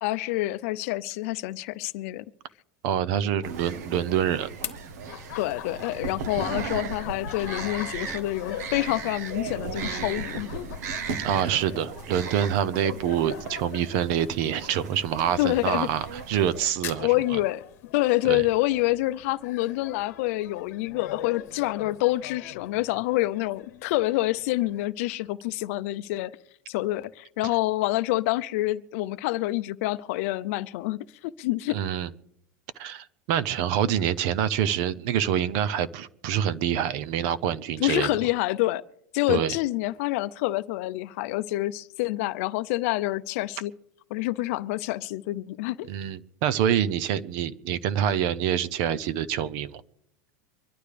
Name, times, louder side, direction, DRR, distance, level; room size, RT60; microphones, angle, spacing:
voice 1, 0.0-2.2 5.4-10.8 15.4-15.9 17.0-17.6 17.9-26.3 26.7-31.8 37.8-38.8 39.1-43.7 44.1-45.9, left 18 dB, 55° left, 0.6 m, -27 dB
voice 2, 2.8-4.5 11.2-17.4 18.2-18.4 31.7-32.1 32.8-38.1 39.3-39.6 45.9-49.8, right 9 dB, 50° right, 0.7 m, -26 dB
sound 1, 3.4-16.7, right 5 dB, 80° right, 1.2 m, -36 dB
sound 2, 3.8-20.7, left 10 dB, 25° left, 1.1 m, -49 dB
Laughter, 5.0-24.9, left 13 dB, 75° left, 1.0 m, -44 dB
24.5 x 11.5 x 3.4 m
supercardioid pair, 165°, 9 cm